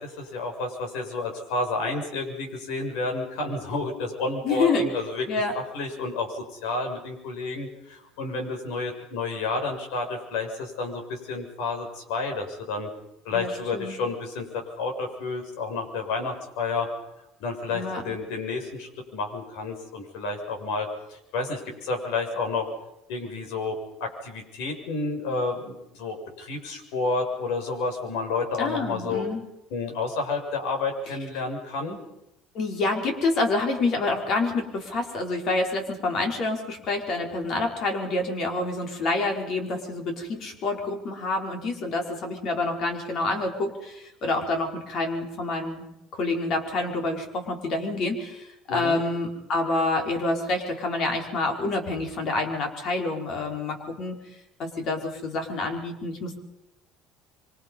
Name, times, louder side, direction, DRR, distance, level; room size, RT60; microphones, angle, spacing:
voice 1, 0.0-5.2 5.5-12.9 13.3-16.9 17.4-22.7 23.1-23.7 24.0-29.2 29.7-32.0 48.7-49.0, left 3 dB, 80° left, 3 dB, 7.1 m, -30 dB
voice 2, 4.4-4.8 5.3-5.5 13.3-13.9 17.7-18.1 28.6-29.4 32.5-45.8 46.1-54.1 54.6-56.4, left 2 dB, 45° left, 3 dB, 5.1 m, -27 dB
26.5 x 25.0 x 5.6 m, 0.84 s
cardioid pair, 145°, 0 cm